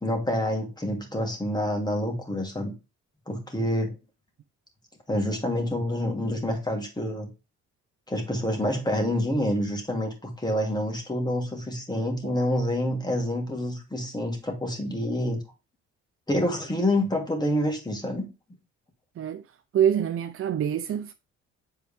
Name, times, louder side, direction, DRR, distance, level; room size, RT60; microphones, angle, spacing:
voice 1, 0.0-2.7 3.3-3.9 5.1-7.3 8.1-15.4 16.3-18.3, left 1 dB, 15° left, 2.7 m, -27 dB
voice 2, 19.7-21.1, right 9 dB, 45° right, 0.6 m, -25 dB
8.0 x 4.6 x 3.5 m
cardioid pair, 90°, 30 cm